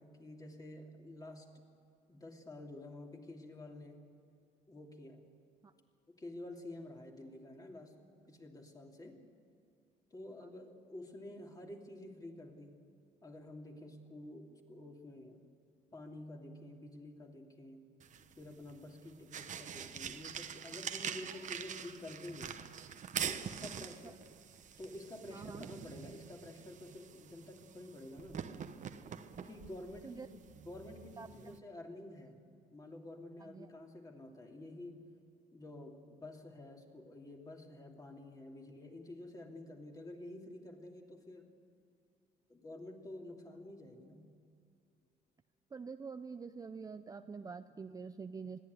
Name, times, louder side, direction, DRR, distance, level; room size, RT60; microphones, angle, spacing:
voice 1, 0.0-1.6 2.1-4.0 4.7-5.2 6.1-8.0 8.3-9.2 10.1-12.7 13.2-15.4 15.9-17.8 18.4-22.6 23.2-24.2 24.8-28.4 29.3-30.3 30.6-32.4 32.7-35.1 35.5-41.5 42.5-44.3, left 1 dB, 20° left, 1 dB, 2.9 m, -50 dB
sound 1, 18.0-31.6, right 8 dB, 45° right, 1.1 m, -45 dB
voice 2, 23.6-24.1 25.3-25.6 30.0-30.3 31.2-31.6 33.4-33.7 45.7-48.6, right 5 dB, 20° right, 9 dB, 0.5 m, -47 dB
21.5 x 14.5 x 9.4 m, 2.5 s
cardioid pair, 110°, 17 cm